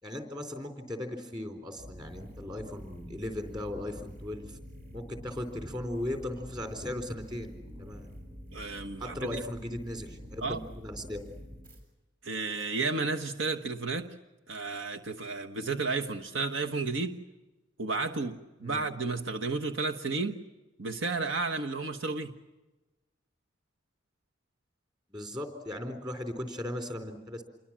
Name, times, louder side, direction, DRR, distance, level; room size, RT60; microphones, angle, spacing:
voice 1, 0.0-4.6 4.9-7.5 7.8-8.1 9.0-11.2 18.6-18.8 25.1-27.4, left 1 dB, 20° right, 7 dB, 4.0 m, -37 dB
sound 1, 1.7-11.8, equal, 50° right, 7.2 m, -47 dB
voice 2, 8.5-9.4 10.4-10.6 12.2-14.1 14.5-17.2 17.8-20.4 20.8-22.4, right 3 dB, 80° right, 5 dB, 1.3 m, -32 dB
28.0 x 23.0 x 7.5 m, 1.1 s
head